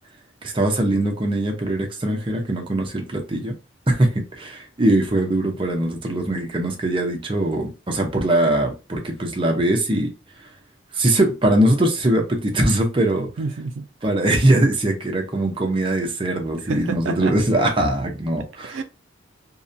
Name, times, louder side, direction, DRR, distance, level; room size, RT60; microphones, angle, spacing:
voice 1, 0.5-3.6 3.9-10.1 10.9-13.3 14.0-18.8, right 1 dB, 25° right, 0.6 m, -21 dB
voice 2, 13.4-13.9 16.6-17.4 18.6-18.8, right 4 dB, 80° right, 0.4 m, -29 dB
2.6 x 2.1 x 2.5 m
head